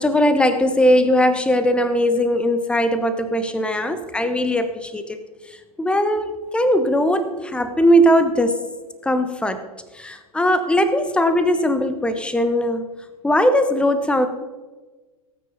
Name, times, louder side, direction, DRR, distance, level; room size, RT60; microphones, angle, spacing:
voice 1, 0.0-8.6 9.0-9.6 9.9-12.9 13.2-14.3, equal, 5° left, 10 dB, 1.1 m, -19 dB
17.5 x 9.3 x 4.2 m, 1.3 s
figure-of-eight pair, 90°, 19 cm